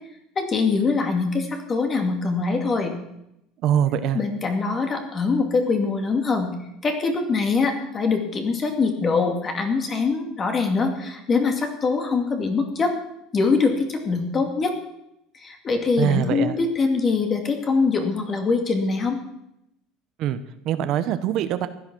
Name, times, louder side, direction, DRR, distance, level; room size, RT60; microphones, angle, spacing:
voice 1, 0.4-2.9 4.1-6.5 6.8-12.9 13.3-14.7 15.4-19.2, left 4 dB, 25° left, 5 dB, 2.4 m, -23 dB
voice 2, 3.6-4.2 16.0-16.6 20.2-20.4 20.6-21.7, right 10 dB, 50° right, 11 dB, 1.0 m, -23 dB
16.0 x 11.5 x 6.1 m, 0.83 s
cardioid pair, 150°, 0 cm